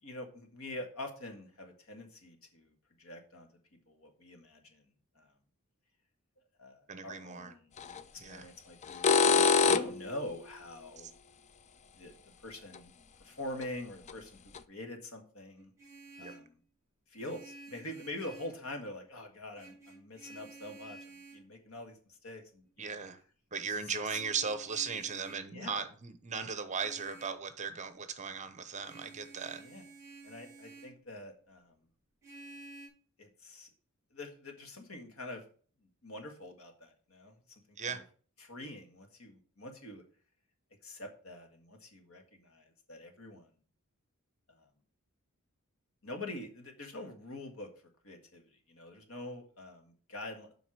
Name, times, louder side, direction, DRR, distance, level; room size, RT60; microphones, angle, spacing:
voice 1, 0.0-2.7 3.0-3.5 3.9-4.9 5.2-5.3 6.6-7.7 8.1-11.1 11.9-12.1 12.4-12.9 13.2-14.4 14.7-15.7 16.2-16.6 17.1-23.0 23.7-24.2 25.5-25.8 29.5-29.8 30.2-31.8 33.2-33.7 34.1-35.4 36.0-38.0 38.4-40.0 40.8-43.5 44.5-44.7 46.0-47.7 48.0-48.4 48.7-50.5, left 1 dB, 75° left, 1.8 m, -45 dB
voice 2, 6.9-7.5 8.2-8.5 16.2-16.3 22.8-23.2 23.5-29.6 37.8-38.0, right 5 dB, 35° right, 0.9 m, -37 dB
sound 1, 7.8-8.0 8.8-10.1 12.8-12.9 13.6-13.7 14.1-14.2 14.5-14.6, left 5 dB, 30° left, 0.4 m, -25 dB
Vehicle horn car horn honking, 15.6-16.5 17.2-18.6 19.5-21.5 24.1-25.5 26.7-27.4 28.8-31.0 32.2-32.9, right 3 dB, 15° right, 2.9 m, -52 dB
7.7 x 5.2 x 6.2 m
head